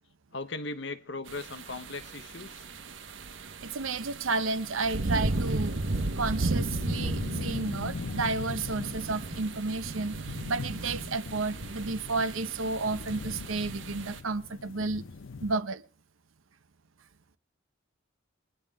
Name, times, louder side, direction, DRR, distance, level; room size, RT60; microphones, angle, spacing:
voice 1, 0.3-2.6, left 3 dB, 60° left, 1.0 m, -38 dB
sound 1, 1.3-14.2, right 2 dB, 70° right, 1.2 m, -35 dB
voice 2, 3.6-5.7 6.2-10.2 10.5-15.0 15.4-15.8, right 3 dB, 85° right, 0.9 m, -31 dB
sound 2, 5.1-15.6, left 3 dB, 80° left, 0.7 m, -41 dB
21.5 x 10.5 x 3.6 m
head